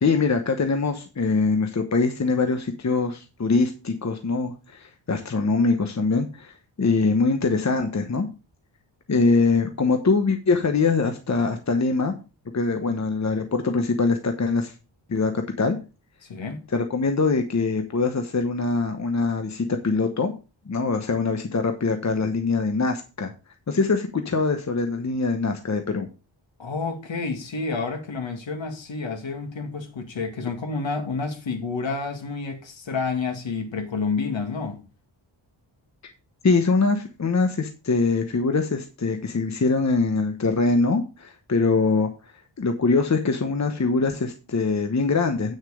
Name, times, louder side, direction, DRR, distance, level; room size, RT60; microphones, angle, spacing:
voice 1, 0.0-8.3 9.1-12.2 12.5-14.7 15.1-15.8 16.7-20.3 20.7-23.3 23.7-26.1 36.4-42.1 42.6-45.6, left 4 dB, 35° left, 1.0 m, -23 dB
voice 2, 16.3-16.6 26.6-34.8, left 4 dB, 65° left, 2.2 m, -29 dB
9.1 x 6.5 x 4.9 m
wide cardioid pair, 135°, 48 cm